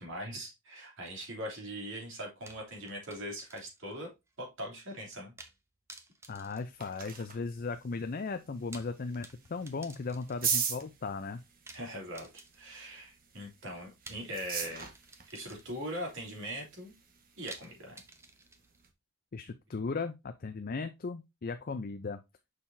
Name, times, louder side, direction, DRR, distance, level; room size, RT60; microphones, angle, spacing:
voice 1, 0.0-4.1 4.4-5.3 11.7-12.3 12.5-14.9 15.3-16.9 17.4-18.0, equal, 60° right, 0 dB, 2.9 m, -41 dB
sound 1, 2.5-4.0 4.3-4.4 5.4-5.6 5.9-7.4 8.5-10.6 11.7-12.8 14.1-16.0 17.5-18.9, right 2 dB, 10° right, 0.8 m, -53 dB
voice 2, 6.3-11.4 19.3-22.2, left 4 dB, 40° left, 9 dB, 0.5 m, -37 dB
sound 2, 6.3-18.9, right 6 dB, 40° right, 1.3 m, -42 dB
6.5 x 5.6 x 2.7 m, 0.22 s
head